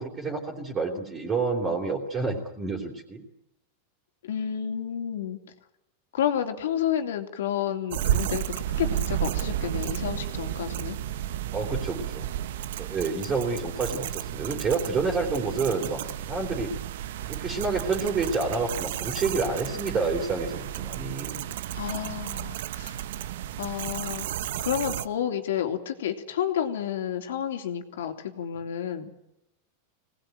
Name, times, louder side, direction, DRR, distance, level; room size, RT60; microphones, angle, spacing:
voice 1, 0.0-3.2 11.5-12.3 12.8-16.0 16.3-16.7 17.3-21.4, right 4 dB, 20° right, -1 dB, 3.5 m, -29 dB
voice 2, 4.2-5.4 6.1-8.4 8.8-11.0 21.7-23.0 23.6-29.1, left 9 dB, 90° left, 6 dB, 3.3 m, -30 dB
sound 1, 7.9-25.1, right 11 dB, 70° right, 1.0 m, -32 dB
22.5 x 19.0 x 9.2 m, 0.84 s
supercardioid pair, 150°, 0 cm